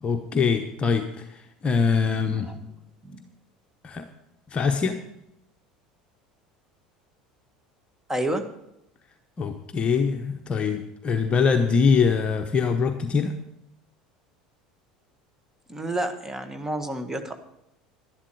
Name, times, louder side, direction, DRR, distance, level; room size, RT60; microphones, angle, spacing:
voice 1, 0.0-2.5 3.8-4.1 4.5-5.0 9.4-13.3, left 5 dB, 30° left, 5 dB, 1.0 m, -23 dB
voice 2, 2.1-2.7 3.0-3.2 8.1-8.4 15.7-17.3, right 1 dB, 10° right, 7 dB, 1.6 m, -30 dB
11.5 x 11.5 x 4.9 m, 0.81 s
figure-of-eight pair, 70°, 4 cm